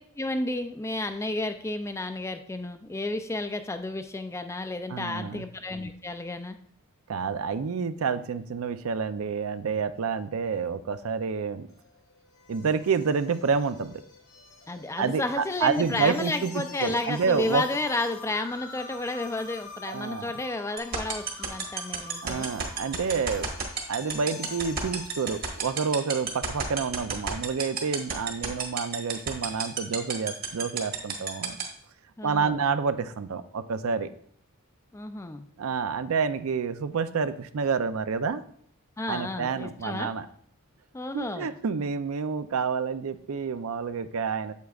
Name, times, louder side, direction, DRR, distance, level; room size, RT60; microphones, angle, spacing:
voice 1, 0.2-6.6 14.7-22.5 32.2-32.6 34.9-35.5 39.0-40.1 40.9-41.5, left 2 dB, 15° left, 8 dB, 0.3 m, -32 dB
voice 2, 4.9-5.4 7.1-11.7 12.5-14.0 15.0-16.5 16.8-17.6 19.9-20.3 22.2-23.5 23.9-31.6 32.2-34.1 35.6-38.4 39.1-40.3 41.1-44.5, right 5 dB, 70° right, 12 dB, 0.4 m, -28 dB
sound 1, 11.7-26.3, left 4 dB, 85° left, 2.0 m, -46 dB
sound 2, 20.8-31.6, right 6 dB, 45° right, 1.3 m, -29 dB
8.3 x 7.7 x 2.4 m, 0.63 s
head